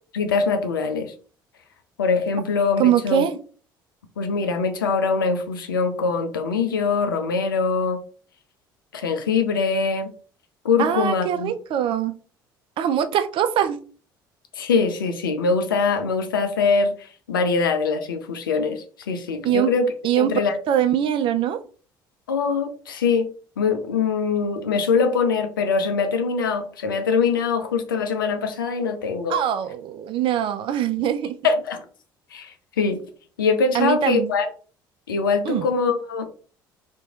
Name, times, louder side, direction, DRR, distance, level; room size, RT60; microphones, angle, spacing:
voice 1, 0.1-1.1 2.0-3.2 4.2-8.0 8.9-10.1 10.6-11.5 14.5-19.9 20.2-20.6 22.3-29.4 31.4-31.8 32.3-33.0 33.4-34.5 35.1-36.2, left 5 dB, 85° left, 0.5 m, -23 dB
voice 2, 2.8-3.4 10.8-12.2 12.8-13.8 19.4-19.7 20.0-20.4 20.7-21.6 29.3-31.4 33.7-34.3 35.4-35.7, right 10 dB, 50° right, 0.5 m, -22 dB
3.0 x 2.6 x 3.5 m
hypercardioid pair, 55°, 11 cm